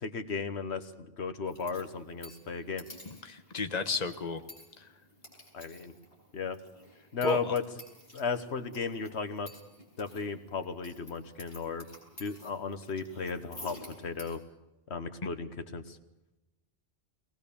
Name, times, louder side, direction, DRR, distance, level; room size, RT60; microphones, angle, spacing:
voice 1, 0.0-0.9 1.2-2.8 5.5-5.9 6.3-6.6 7.1-7.6 8.1-9.5 10.0-11.8 12.2-14.4 14.9-16.0, left 5 dB, 85° left, 10 dB, 1.5 m, -35 dB
sound 1, 1.5-14.4, left 1 dB, 60° left, 7.7 m, -52 dB
voice 2, 3.0-4.4 4.8-4.9 7.2-7.5, left 4 dB, 40° left, 8 dB, 1.4 m, -33 dB
22.5 x 19.0 x 7.0 m, 1.0 s
omnidirectional pair, 1.1 m